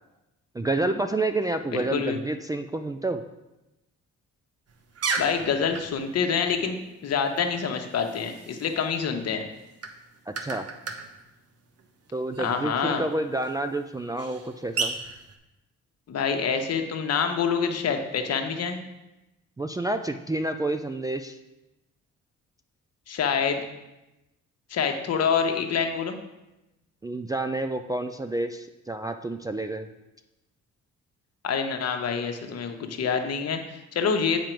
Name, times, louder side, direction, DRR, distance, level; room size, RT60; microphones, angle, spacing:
voice 1, 0.5-3.2 10.3-10.7 12.1-14.9 19.6-21.4 27.0-29.9, right 2 dB, 15° right, 5 dB, 0.3 m, -29 dB
voice 2, 1.7-2.2 5.2-9.5 12.4-13.0 16.1-18.8 23.1-23.6 24.7-26.2 31.4-34.4, left 6 dB, 55° left, 5 dB, 1.0 m, -26 dB
sound 1, 4.7-15.4, right 4 dB, 55° right, 1.0 m, -37 dB
7.5 x 5.2 x 4.5 m, 0.97 s
cardioid pair, 90°, 30 cm